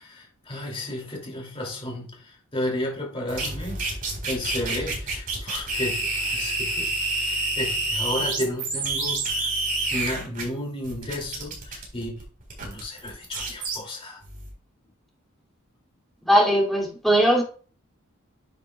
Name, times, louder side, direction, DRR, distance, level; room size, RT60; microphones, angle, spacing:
voice 1, 0.0-4.0 4.3-9.5 9.9-12.2 12.6-14.2, left 1 dB, 25° left, 2.6 m, -33 dB
sound 1, 3.3-10.4 10.8-13.8 14.2-14.5, right 2 dB, 45° right, 4.3 m, -28 dB
voice 2, 16.2-17.4, right 1 dB, ahead, 2.5 m, -19 dB
10.0 x 7.9 x 2.3 m
head